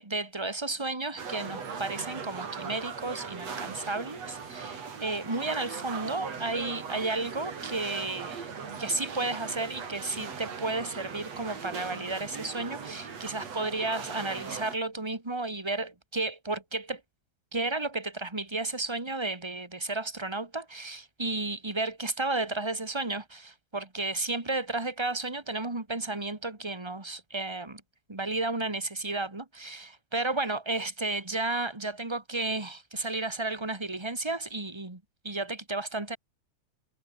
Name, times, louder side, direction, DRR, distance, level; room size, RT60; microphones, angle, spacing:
voice 1, 0.0-8.5 8.8-17.0 17.5-27.8 28.1-36.2, right 2 dB, 15° right, 1.1 m, -33 dB
sound 1, 1.2-14.8, right 6 dB, 50° right, 4.3 m, -39 dB
omnidirectional pair, 3.9 m